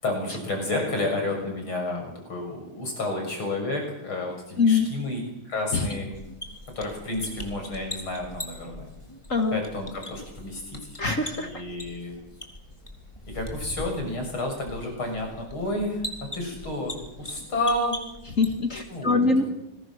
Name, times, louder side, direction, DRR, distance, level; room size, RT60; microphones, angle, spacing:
voice 1, 0.0-5.2 5.5-6.1 6.8-8.9 9.5-11.0 11.3-12.1 13.3-16.1 16.3-18.0 18.8-19.5, left 2 dB, 85° left, 3 dB, 7.6 m, -30 dB
voice 2, 4.6-4.9 5.7-5.9 9.3-9.6 11.0-11.6 18.4-19.5, left 4 dB, 40° left, 5 dB, 1.9 m, -23 dB
sound 1, 6.1-18.9, left 1 dB, 15° left, 3.5 m, -41 dB
27.5 x 21.5 x 6.4 m, 0.86 s
omnidirectional pair, 2.2 m